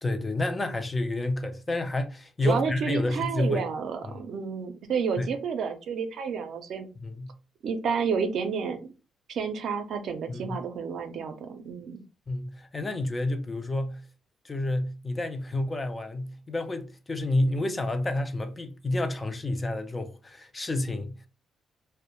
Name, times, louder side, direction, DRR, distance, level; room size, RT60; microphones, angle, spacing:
voice 1, 0.0-3.7 4.0-4.3 5.2-5.3 7.0-7.3 10.3-10.6 12.3-14.0 14.4-21.2, left 2 dB, 20° left, 0.4 m, -29 dB
voice 2, 2.4-6.9 7.6-8.8 9.3-12.0, right 6 dB, 65° right, 0.4 m, -30 dB
2.1 x 2.1 x 2.9 m
cardioid pair, 90°, 0 cm